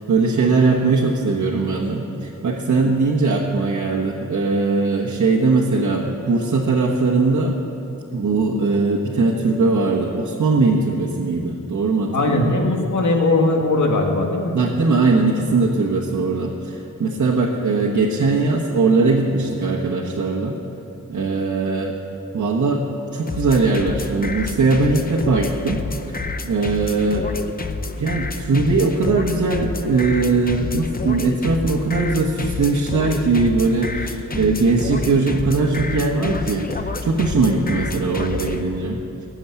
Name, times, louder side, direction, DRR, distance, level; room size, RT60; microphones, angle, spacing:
voice 1, 0.1-7.5 8.1-12.5 14.5-20.6 21.1-22.0 22.3-22.8 23.1-25.8 26.4-27.3 28.0-39.0, right 3 dB, 65° right, -3 dB, 1.2 m, -20 dB
voice 2, 12.1-14.6, left 2 dB, 65° left, 2 dB, 1.7 m, -19 dB
sound 1, 23.3-38.6, left 3 dB, 30° left, 0.7 m, -29 dB
18.5 x 7.2 x 8.2 m, 2.7 s
wide cardioid pair, 155°, 32 cm